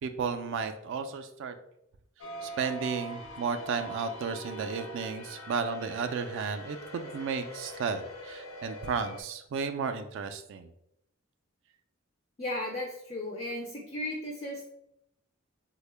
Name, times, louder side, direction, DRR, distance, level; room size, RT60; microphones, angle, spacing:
voice 1, 0.0-1.5 2.4-10.7, right 5 dB, 60° right, 9 dB, 0.3 m, -33 dB
sound 1, 2.2-9.2, equal, 75° left, 0.6 m, -43 dB
voice 2, 12.4-14.7, left 1 dB, 30° left, 0 dB, 0.4 m, -35 dB
3.5 x 2.1 x 3.2 m, 0.78 s
head